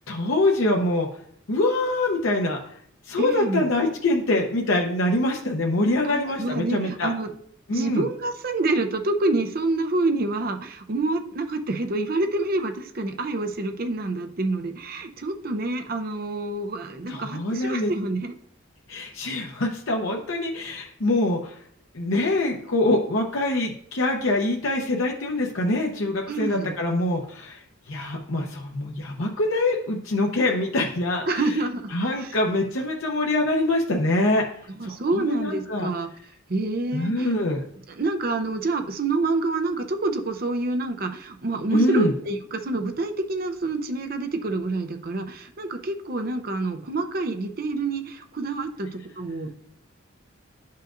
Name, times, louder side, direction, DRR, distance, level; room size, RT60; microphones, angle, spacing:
voice 1, 0.1-1.1 1.5-2.6 3.1-7.1 7.7-8.0 17.1-17.9 18.9-21.5 21.9-27.6 27.9-31.4 31.9-34.4 34.8-35.9 36.9-37.6 41.7-42.1, left 2 dB, 80° left, 1 dB, 0.8 m, -24 dB
voice 2, 3.2-3.7 6.0-7.3 7.7-18.3 26.3-26.7 31.3-31.9 32.2-32.4 34.7-36.1 36.5-37.3 37.9-49.7, right 2 dB, 45° right, 5 dB, 0.6 m, -27 dB
10.0 x 5.6 x 2.5 m, 0.65 s
head